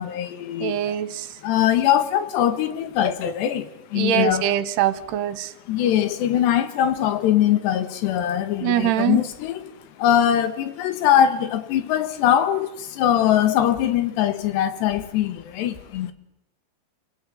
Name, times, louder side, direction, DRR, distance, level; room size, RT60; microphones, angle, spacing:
voice 1, 0.0-1.0 1.4-4.5 5.7-9.7 10.0-16.1, left 10 dB, 75° left, 3.8 m, -22 dB
voice 2, 0.6-1.3 4.0-5.5 8.6-9.2, right 11 dB, 75° right, 3.0 m, -23 dB
29.5 x 18.0 x 9.4 m
omnidirectional pair, 5.1 m